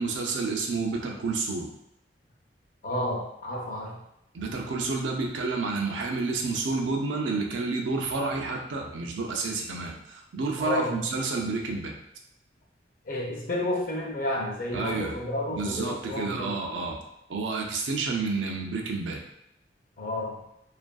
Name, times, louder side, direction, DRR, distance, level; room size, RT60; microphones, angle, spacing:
voice 1, 0.0-1.7 4.3-12.0 14.7-15.2 15.5-17.0 17.3-19.2, right 3 dB, 85° right, 1 dB, 0.4 m, -30 dB
voice 2, 2.8-4.0 10.6-11.1 13.0-16.5 20.0-20.4, left 1 dB, 50° left, -1 dB, 0.5 m, -31 dB
2.5 x 2.4 x 2.3 m, 0.81 s
head